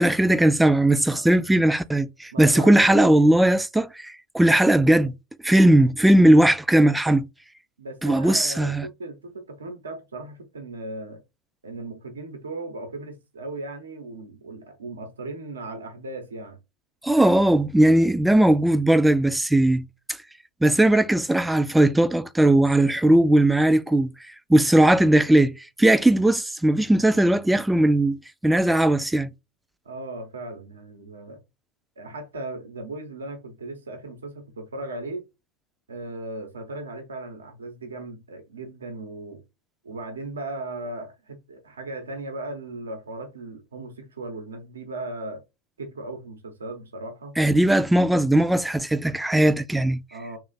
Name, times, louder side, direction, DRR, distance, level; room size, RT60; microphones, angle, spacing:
voice 1, 0.0-5.1 5.4-7.3 8.0-8.9 17.0-19.8 20.6-24.1 24.5-29.3 47.4-50.0, right 1 dB, 5° right, 0.3 m, -18 dB
voice 2, 2.3-3.3 7.8-11.2 11.6-16.6 29.8-31.4 32.0-35.2 35.9-39.4 39.8-45.4 45.8-47.4 50.1-50.4, right 2 dB, 85° right, 0.9 m, -37 dB
3.2 x 2.4 x 4.0 m
hypercardioid pair, 95°, 0 cm